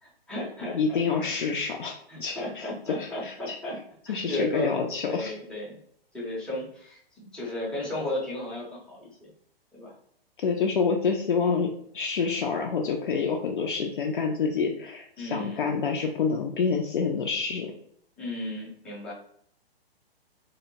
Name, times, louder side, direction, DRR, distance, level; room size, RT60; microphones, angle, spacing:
voice 1, 0.0-1.3 2.1-3.8 4.1-4.8 5.1-5.8 6.1-9.3 9.7-9.9 15.2-15.6 18.2-19.1, left 1 dB, 5° left, -7 dB, 0.6 m, -34 dB
voice 2, 0.7-2.6 3.0-3.6 4.1-5.3 10.4-17.7, left 5 dB, 55° left, 1 dB, 0.4 m, -27 dB
2.7 x 2.0 x 2.7 m, 0.66 s
figure-of-eight pair, 120°, 30 cm